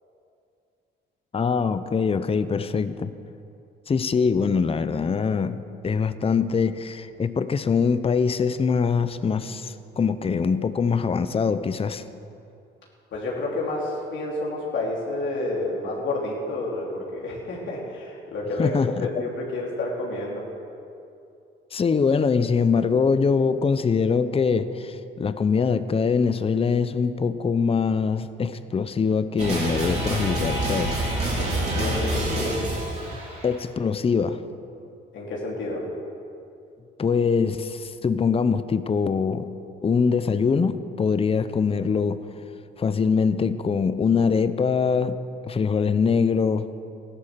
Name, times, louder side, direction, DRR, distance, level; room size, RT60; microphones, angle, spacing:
voice 1, 1.3-3.1 3.9-12.0 18.6-19.3 21.7-31.0 33.4-34.4 37.0-39.5 39.8-42.2 42.8-45.2 45.4-46.7, left 5 dB, 30° left, 12 dB, 0.7 m, -23 dB
voice 2, 13.1-20.4 31.4-32.6 35.1-35.9, left 2 dB, 70° left, -3 dB, 3.1 m, -30 dB
sound 1, 29.4-33.6, right 1 dB, 35° right, 5.0 m, -27 dB
15.0 x 11.5 x 7.5 m, 2.6 s
cardioid pair, 90°, 20 cm